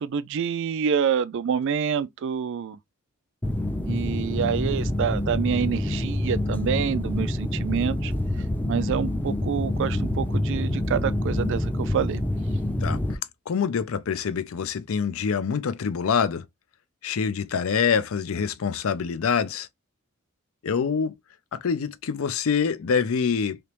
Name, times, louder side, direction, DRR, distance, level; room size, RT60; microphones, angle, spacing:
voice 1, 0.0-2.8 3.8-8.1 8.6-12.2, right 7 dB, 60° right, 0.3 m, -27 dB
sound 1, 3.4-13.2, left 1 dB, 10° left, 0.4 m, -27 dB
voice 2, 12.8-13.2 13.5-16.4 17.0-19.7 20.6-21.1 21.5-23.6, left 6 dB, 70° left, 0.4 m, -25 dB
3.3 x 2.9 x 3.0 m
head